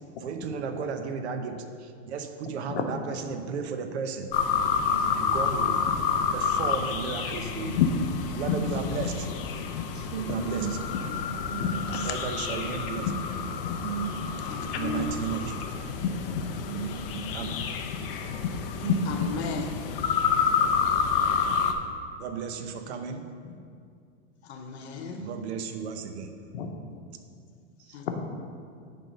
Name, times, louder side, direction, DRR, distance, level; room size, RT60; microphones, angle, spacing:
voice 1, 0.2-4.3 4.6-4.7 5.1-5.8 6.3-7.8 8.3-9.3 10.2-10.8 12.0-13.2 14.7-15.8 17.3-17.7 22.2-23.3 25.1-26.4, right 6 dB, 85° right, 6 dB, 0.9 m, -34 dB
sound 1, 4.3-21.7, left 6 dB, 55° left, 0.7 m, -28 dB
voice 2, 4.9-5.2 8.6-8.8 9.9-10.8 11.5-12.1 13.8-14.4 16.7-17.3 18.8-19.4, right 8 dB, 55° right, 10 dB, 0.5 m, -36 dB
voice 3, 14.5-15.1 19.1-19.7 24.5-25.2 26.5-26.7 27.9-28.2, left 6 dB, 80° left, 4 dB, 1.0 m, -34 dB
9.2 x 3.7 x 5.4 m, 2.3 s
supercardioid pair, 170°, 32 cm